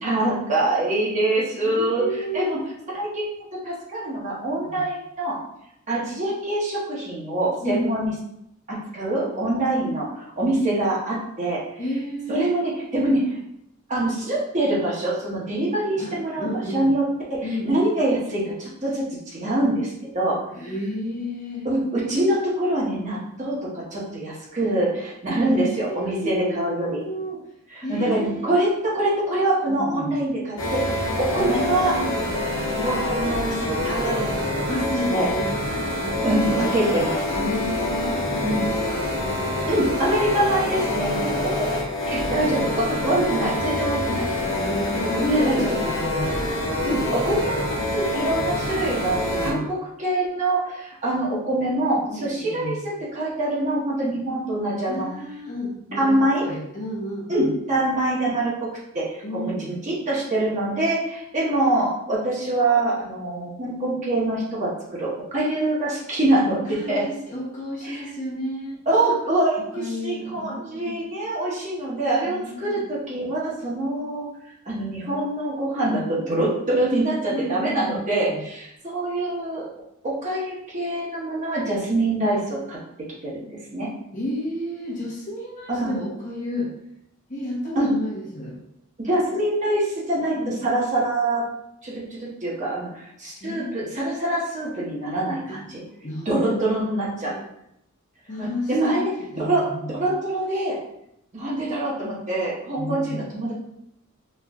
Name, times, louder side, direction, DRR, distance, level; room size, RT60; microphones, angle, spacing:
voice 1, 0.0-2.0 2.3-2.6 2.9-3.3 3.6-5.4 5.9-8.1 8.7-11.6 12.3-13.4 13.9-17.0 17.3-20.7 21.6-27.1 27.7-31.9 32.8-35.3 36.2-37.1 38.4-38.6 39.7-44.2 45.1-45.8 46.8-55.1 56.0-56.4 57.3-58.7 58.9-66.6 66.9-67.0 67.8-68.0 68.9-74.3 74.7-79.7 80.0-82.8 83.2-83.9 85.7-86.0 87.8-87.9 89.0-91.4 91.8-95.8 96.3-97.3 98.4-99.1 99.4-100.8 101.3-103.5, right 1 dB, 35° right, -5 dB, 1.0 m, -25 dB
voice 2, 1.6-2.5 4.6-4.8 7.6-8.0 11.8-12.4 16.0-16.9 17.4-17.7 20.5-21.7 25.4-27.4 27.8-28.5 29.7-30.2 31.4-32.1 34.7-35.5 36.0-37.1 37.3-38.7 39.2-39.7 44.1-46.4 49.3-49.6 52.1-52.8 54.9-57.5 59.2-59.8 66.6-68.8 69.7-71.0 72.2-72.8 77.3-78.4 84.1-86.7 87.3-88.6 90.4-90.6 93.4-93.8 95.5-95.6 96.0-97.4 98.3-99.9 102.8-103.2, equal, 35° left, -4 dB, 1.0 m, -32 dB
sound 1, 30.6-49.5, left 1 dB, 60° left, 1.2 m, -26 dB
4.3 x 3.1 x 2.4 m, 0.78 s
head